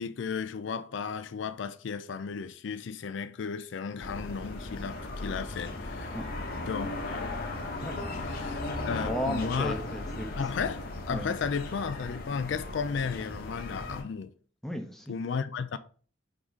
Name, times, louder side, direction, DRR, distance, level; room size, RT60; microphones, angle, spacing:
voice 1, 0.0-6.2 6.7-7.3 8.2-9.8 10.4-14.3 15.1-15.8, left 6 dB, 65° left, 0.4 m, -34 dB
sound 1, 4.0-14.0, left 2 dB, 45° left, 0.9 m, -37 dB
voice 2, 7.8-10.3 11.1-11.3 14.6-15.2, equal, ahead, 0.6 m, -36 dB
4.7 x 3.7 x 5.4 m
head